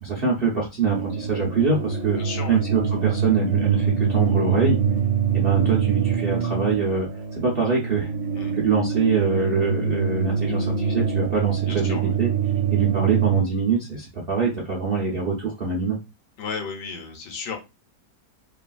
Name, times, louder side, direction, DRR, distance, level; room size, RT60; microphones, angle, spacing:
voice 1, 0.0-2.2 2.5-4.8 5.3-8.1 8.5-12.3 12.7-16.0, right 5 dB, 65° right, -4 dB, 0.5 m, -24 dB
sound 1, 0.9-13.4, right 6 dB, 85° right, 1.3 m, -24 dB
voice 2, 2.2-2.6 8.3-8.5 11.6-12.1 16.4-17.6, left 5 dB, 85° left, 3 dB, 1.4 m, -34 dB
3.2 x 2.4 x 2.3 m, 0.26 s
omnidirectional pair, 1.9 m